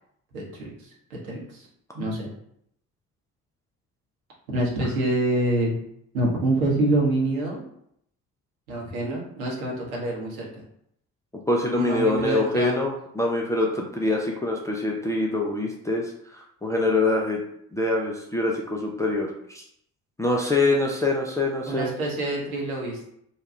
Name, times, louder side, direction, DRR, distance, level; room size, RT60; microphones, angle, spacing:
voice 1, 0.3-0.7 1.1-1.7 1.9-2.3 4.5-5.8 6.1-7.6 8.7-10.5 11.8-12.8 21.7-23.1, right 1 dB, 75° right, -3 dB, 0.9 m, -26 dB
voice 2, 11.5-17.4 17.7-19.3 19.5-19.6 20.2-21.9, left 2 dB, 10° left, -1 dB, 0.3 m, -24 dB
2.7 x 2.2 x 3.2 m, 0.71 s
figure-of-eight pair, 45°, 42 cm